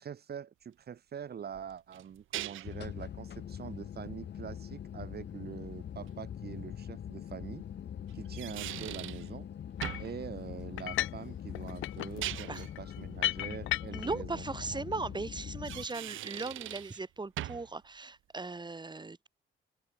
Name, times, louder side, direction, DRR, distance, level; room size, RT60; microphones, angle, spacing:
voice 1, 0.0-7.6 8.1-9.5 10.0-14.4 14.7-14.8, right 8 dB, 55° right, 3.8 m, -44 dB
sound 1, 1.5-2.8 6.1-6.2 8.1-9.3 9.8-10.2 12.0-12.7 15.5-17.0 17.4-17.7, right 15 dB, 85° right, 2.7 m, -40 dB
sound 2, 2.6-15.9, left 9 dB, 60° left, 4.7 m, -43 dB
sound 3, 9.8-10.1 10.8-11.3 11.5-14.2, left 16 dB, 85° left, 0.8 m, -35 dB
voice 2, 13.9-19.3, right 3 dB, 20° right, 4.9 m, -38 dB
open air
cardioid pair, 90°, 20 cm